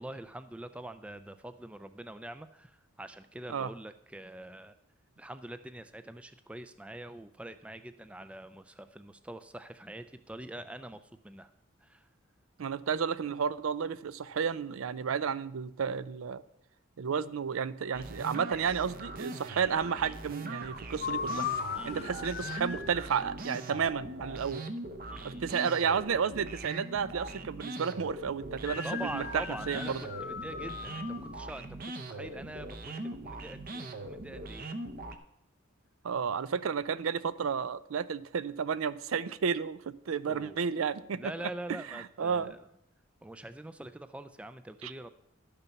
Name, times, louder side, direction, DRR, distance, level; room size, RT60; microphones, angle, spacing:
voice 1, 0.0-4.7 5.2-11.5 11.8-12.1 21.8-22.2 25.1-25.5 28.8-34.7 40.3-40.7 41.2-42.6 43.2-45.1, right 1 dB, 5° right, 10 dB, 0.3 m, -44 dB
voice 2, 12.6-16.4 17.0-21.4 21.8-24.6 25.2-28.9 29.1-30.0 36.0-41.2 41.9-42.5 44.8-44.9, right 6 dB, 80° right, 16 dB, 0.4 m, -32 dB
sound 1, 17.9-35.2, right 2 dB, 45° right, 0.7 m, -41 dB
sound 2, 21.0-23.0 28.6-31.3, left 7 dB, 45° left, 0.6 m, -38 dB
11.5 x 6.9 x 5.7 m, 0.80 s
head